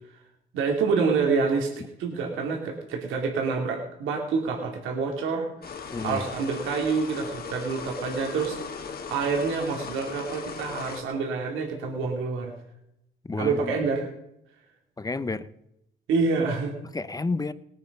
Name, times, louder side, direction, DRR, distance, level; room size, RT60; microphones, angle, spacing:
voice 1, 0.5-1.7 2.0-5.5 6.0-8.6 9.1-12.5 13.4-14.1 16.1-16.7, right 4 dB, 90° right, 1 dB, 2.5 m, -27 dB
sound 1, 5.6-11.0, left 5 dB, 50° left, 1.8 m, -38 dB
voice 2, 5.9-6.2 13.3-13.7 15.0-15.5 16.9-17.5, left 3 dB, 20° left, 15 dB, 0.8 m, -30 dB
18.5 x 9.5 x 5.3 m, 0.83 s
cardioid pair, 90°, 20 cm